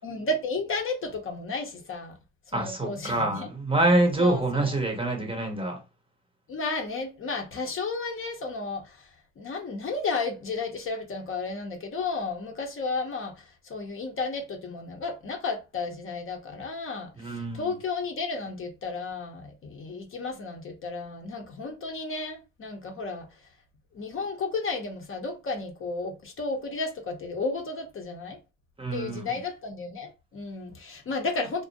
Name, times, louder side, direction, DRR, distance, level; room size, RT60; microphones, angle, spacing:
voice 1, 0.0-2.2 2.5-3.5 4.2-4.7 6.5-23.4 23.9-28.4 28.9-31.6, left 3 dB, 45° left, 0.6 m, -33 dB
voice 2, 2.5-5.8 17.2-17.7 28.8-29.2, right 2 dB, 20° right, 0.7 m, -26 dB
2.4 x 2.0 x 2.6 m
cardioid pair, 90°, 30 cm